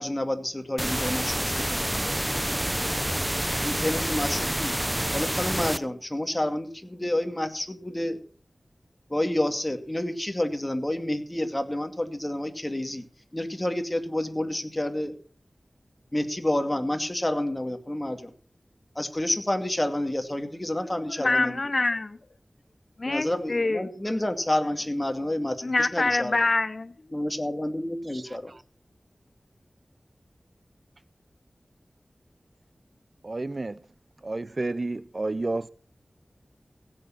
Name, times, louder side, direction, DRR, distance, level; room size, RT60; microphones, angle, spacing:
voice 1, 0.0-2.2 3.6-4.7 5.1-8.2 9.1-13.1 13.3-15.2 16.1-18.3 18.9-21.6 23.0-26.4 27.1-28.5, left 1 dB, 20° left, 2.4 m, -29 dB
sound 1, 0.8-5.8, right 1 dB, 10° right, 0.8 m, -28 dB
voice 2, 21.2-22.2 23.0-23.8 25.6-26.9, left 2 dB, 50° left, 0.7 m, -25 dB
voice 3, 28.1-28.6 33.2-33.8 34.2-35.7, right 2 dB, 45° right, 0.6 m, -31 dB
16.5 x 8.8 x 5.8 m
wide cardioid pair, 80°, 0 cm